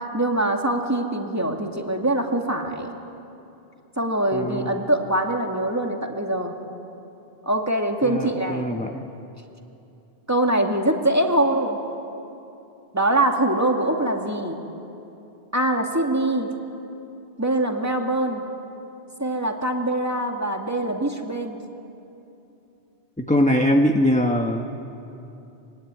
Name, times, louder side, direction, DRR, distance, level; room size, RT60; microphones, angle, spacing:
voice 1, 0.0-2.9 4.0-6.5 7.5-8.7 10.3-11.8 12.9-14.6 15.5-16.5 17.4-18.5 19.2-21.6, right 1 dB, 15° right, 2 dB, 2.2 m, -23 dB
voice 2, 4.3-4.8 8.0-9.0 23.2-24.7, equal, 5° left, 3 dB, 1.0 m, -22 dB
25.0 x 22.0 x 9.7 m, 2.8 s
omnidirectional pair, 1.1 m